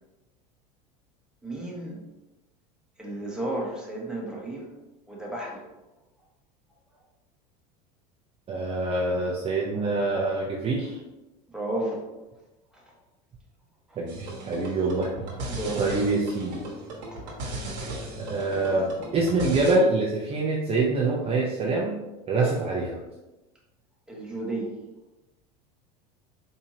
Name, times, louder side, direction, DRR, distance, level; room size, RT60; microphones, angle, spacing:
voice 1, 1.4-2.0 3.0-4.7 5.1-5.6 11.5-12.0 12.7-12.9 13.9-14.0 15.5-16.1 17.1-17.4 24.1-24.7, right 1 dB, 5° right, -3 dB, 1.1 m, -33 dB
voice 2, 8.5-11.0 14.0-15.1 15.8-16.6 18.2-18.9 19.1-22.0 22.3-23.0, right 2 dB, 25° right, -3 dB, 0.6 m, -25 dB
sound 1, 14.1-19.7, right 2 dB, 90° right, 1.1 m, -36 dB
4.3 x 2.7 x 2.7 m, 1.0 s
hypercardioid pair, 100°, 21 cm